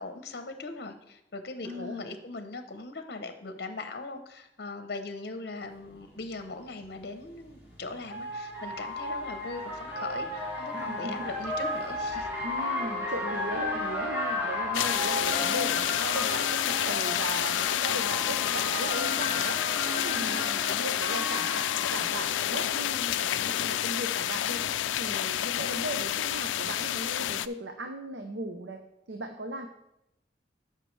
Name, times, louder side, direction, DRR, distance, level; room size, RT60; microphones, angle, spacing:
voice 1, 0.0-12.3 20.1-20.5, left 3 dB, 55° left, 8 dB, 0.7 m, -40 dB
voice 2, 1.6-2.1 10.7-11.3 12.4-19.6 19.9-24.6 25.0-28.8 29.1-29.7, right 1 dB, 80° right, 5 dB, 0.7 m, -37 dB
sound 1, 5.9-6.0 7.4-23.0, left 1 dB, 10° right, 1.8 m, -34 dB
sound 2, 14.7-27.5, left 12 dB, 85° left, 0.3 m, -29 dB
13.0 x 5.7 x 3.2 m, 0.83 s
head